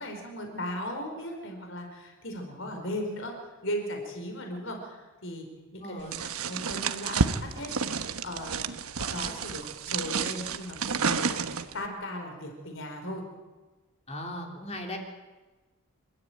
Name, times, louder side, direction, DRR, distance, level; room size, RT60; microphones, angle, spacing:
voice 1, 0.0-5.5 5.7-13.2, equal, 60° left, 4 dB, 4.8 m, -37 dB
voice 2, 5.8-6.2 14.1-15.0, left 1 dB, 30° left, 2 dB, 3.3 m, -37 dB
sound 1, 6.1-11.8, right 5 dB, 80° right, 1.1 m, -30 dB
28.0 x 13.5 x 9.4 m, 1.2 s
head